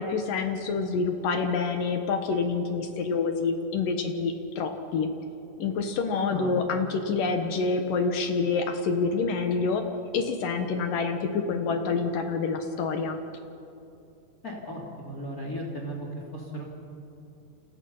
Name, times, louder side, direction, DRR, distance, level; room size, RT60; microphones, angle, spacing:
voice 1, 0.0-5.1 5.6-9.8 10.1-13.2, left 4 dB, 65° left, 6 dB, 2.6 m, -27 dB
voice 2, 6.1-6.8 14.4-16.1 16.3-16.6, equal, 20° left, -1 dB, 3.1 m, -36 dB
29.5 x 27.5 x 5.7 m, 2.7 s
omnidirectional pair, 4.9 m